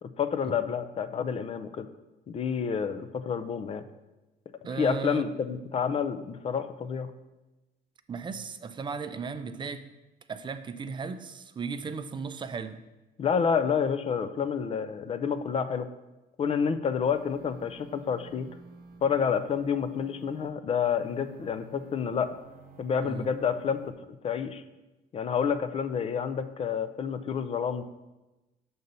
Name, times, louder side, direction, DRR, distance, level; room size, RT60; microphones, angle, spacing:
voice 1, 0.0-1.9 2.3-3.8 4.8-7.1 13.2-15.9 16.4-18.5 19.0-22.3 22.8-23.8 24.2-24.6 25.1-27.8, left 6 dB, 35° left, 12 dB, 0.4 m, -29 dB
voice 2, 4.6-5.3 8.1-9.8 10.3-12.8 23.0-23.3, right 5 dB, 30° right, 11 dB, 0.4 m, -36 dB
sound 1, 17.0-20.5 20.9-23.9, right 4 dB, 60° right, 0.8 m, -52 dB
6.5 x 4.0 x 5.4 m, 1.0 s
cardioid pair, 110°, 17 cm